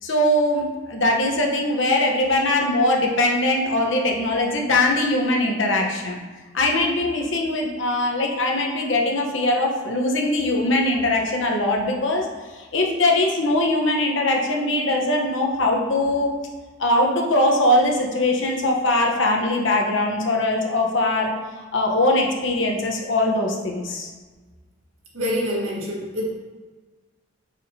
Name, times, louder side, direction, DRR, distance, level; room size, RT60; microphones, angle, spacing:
voice 1, 0.0-6.2 6.5-16.3 16.8-21.3 21.7-24.1, left 1 dB, 65° left, 1 dB, 1.1 m, -21 dB
voice 2, 25.1-26.3, left 1 dB, 80° right, -3 dB, 1.8 m, -26 dB
9.2 x 4.9 x 2.9 m, 1.4 s
head